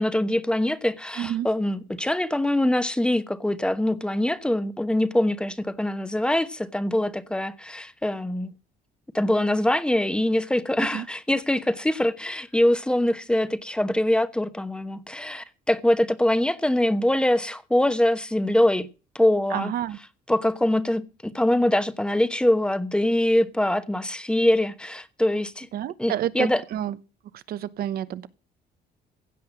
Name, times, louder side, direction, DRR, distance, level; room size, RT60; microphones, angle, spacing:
voice 1, 0.0-8.5 9.1-18.9 19.1-19.7 20.3-25.7 26.0-26.6, left 1 dB, 5° left, 1.0 m, -23 dB
voice 2, 19.5-20.0 25.7-27.0 27.3-28.3, right 11 dB, 65° right, 0.9 m, -29 dB
16.0 x 5.7 x 7.7 m
cardioid pair, 110°, 17 cm